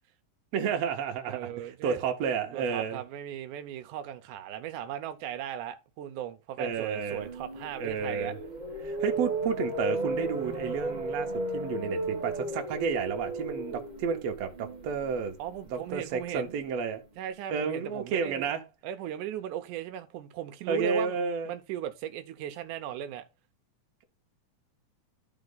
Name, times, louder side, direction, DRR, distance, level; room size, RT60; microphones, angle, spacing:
voice 1, 0.5-1.5 1.8-3.0 6.6-7.2 7.8-8.4 8.8-15.4 15.7-17.0 17.5-18.6 20.7-21.5, right 6 dB, 65° right, 2.0 m, -31 dB
voice 2, 1.3-2.0 2.5-8.4 15.4-16.6 17.2-18.5 18.8-21.2 21.5-23.3, right 11 dB, 90° right, 2.3 m, -37 dB
sound 1, 6.8-16.9, right 2 dB, 50° right, 0.5 m, -35 dB
12.0 x 4.1 x 3.9 m
omnidirectional pair, 3.5 m